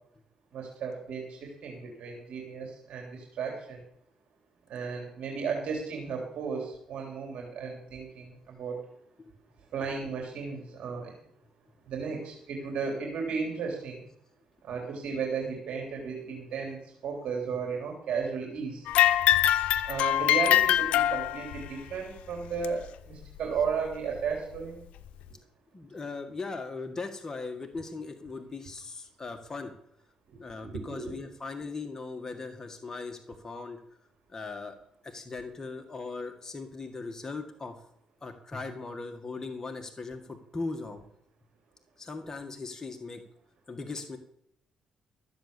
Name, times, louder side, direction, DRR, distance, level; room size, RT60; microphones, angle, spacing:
voice 1, 0.5-3.8 4.7-8.7 9.7-11.1 11.9-14.0 14.6-18.9 19.8-24.8 30.6-31.0, right 5 dB, 70° right, 1 dB, 3.4 m, -34 dB
sound 1, 18.9-21.7 22.6-22.7 23.6-23.7 24.6-24.7, left 12 dB, 85° left, 0.6 m, -23 dB
voice 2, 25.7-29.7 30.4-33.8 34.3-34.8 35.0-37.8 38.2-41.0 42.0-43.2 43.7-44.2, left 3 dB, 25° left, 4 dB, 1.8 m, -39 dB
14.0 x 7.9 x 7.0 m, 0.71 s
cardioid pair, 75°, 2 cm